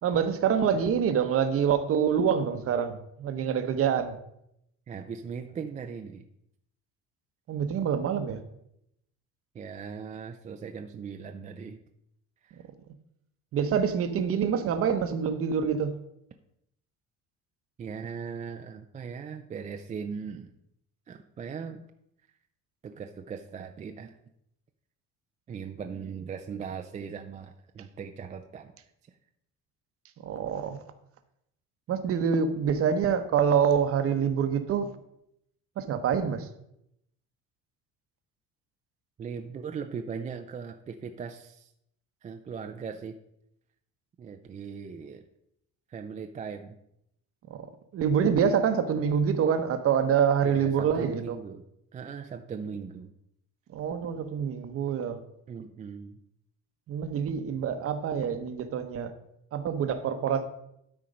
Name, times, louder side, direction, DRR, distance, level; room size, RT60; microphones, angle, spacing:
voice 1, 0.0-4.2 7.5-8.4 13.5-16.0 30.2-30.8 31.9-35.0 35.8-36.5 47.5-47.7 47.9-51.4 53.7-55.2 56.9-59.1 59.5-60.4, right 7 dB, 40° right, 0.9 m, -26 dB
voice 2, 4.9-6.2 9.5-11.8 12.4-12.6 17.8-20.5 21.1-21.9 22.8-24.1 25.5-28.7 39.2-41.7 42.2-43.1 44.2-45.2 45.9-46.8 50.4-51.6 51.9-53.1 55.5-56.2, right 6 dB, 20° right, 0.4 m, -39 dB
12.5 x 4.4 x 5.2 m
cardioid pair, 165°, 33 cm